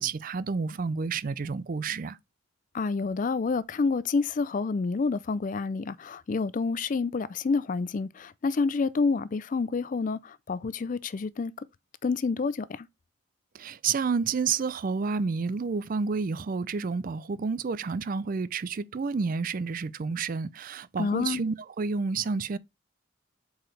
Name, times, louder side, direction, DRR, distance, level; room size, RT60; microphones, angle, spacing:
voice 1, 0.0-2.2 13.5-22.6, right 5 dB, 40° right, 0.4 m, -30 dB
voice 2, 2.7-11.5 12.0-12.9 21.0-21.4, left 4 dB, 40° left, 0.4 m, -28 dB
7.6 x 4.8 x 3.2 m
head